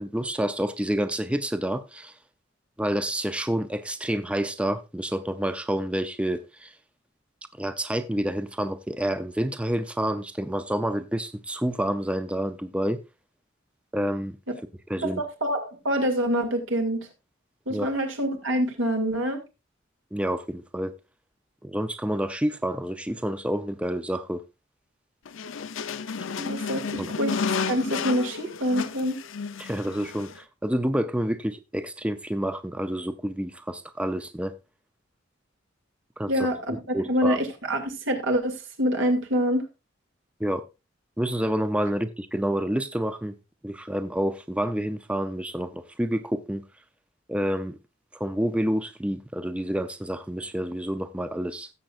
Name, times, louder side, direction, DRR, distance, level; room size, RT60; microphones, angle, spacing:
voice 1, 0.0-2.2 2.8-6.8 7.5-13.0 13.9-14.4 14.9-15.2 17.7-17.9 20.1-20.9 21.6-24.4 27.0-27.1 29.6-34.5 36.2-36.5 36.9-37.4 40.4-40.7 41.2-43.3 43.6-46.6 47.3-47.8 48.1-51.7, right 1 dB, 5° right, 0.5 m, -28 dB
voice 2, 15.0-17.1 17.7-19.4 26.4-29.2 36.3-39.6, equal, 85° right, 2.3 m, -26 dB
sound 1, 25.3-30.4, left 5 dB, 85° left, 0.6 m, -32 dB
16.5 x 7.5 x 2.4 m
head